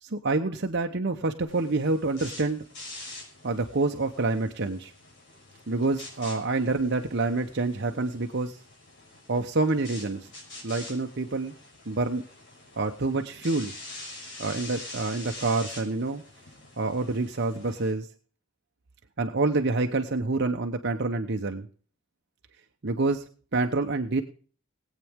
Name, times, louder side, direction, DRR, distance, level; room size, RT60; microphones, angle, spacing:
voice 1, 0.0-2.6 3.4-4.9 5.7-8.6 9.3-10.3 10.6-11.5 11.9-12.2 12.8-13.7 14.4-16.2 16.8-18.1 19.2-21.7 22.8-23.2 23.5-24.2, right 3 dB, 55° right, 5 dB, 0.9 m, -27 dB
sound 1, 1.5-17.9, left 2 dB, 60° left, 5.7 m, -45 dB
20.0 x 8.4 x 3.6 m, 0.42 s
head